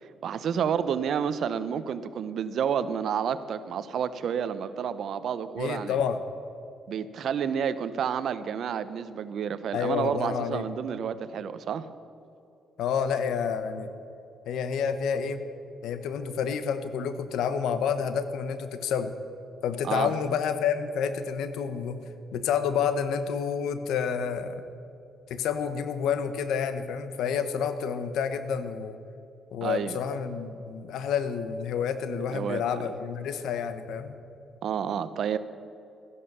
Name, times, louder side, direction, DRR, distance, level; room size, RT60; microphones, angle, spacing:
voice 1, 0.2-6.0 6.9-11.9 19.8-20.1 29.6-30.0 32.3-32.6 34.6-35.4, right 7 dB, 65° right, 13 dB, 0.8 m, -30 dB
voice 2, 5.6-6.2 9.7-10.7 12.8-13.9 14.5-15.4 15.8-19.1 19.6-22.0 22.3-24.6 25.3-29.0 29.5-34.1, left 7 dB, 85° left, 11 dB, 1.0 m, -29 dB
15.0 x 11.0 x 6.8 m, 2.7 s
cardioid pair, 90°, 0 cm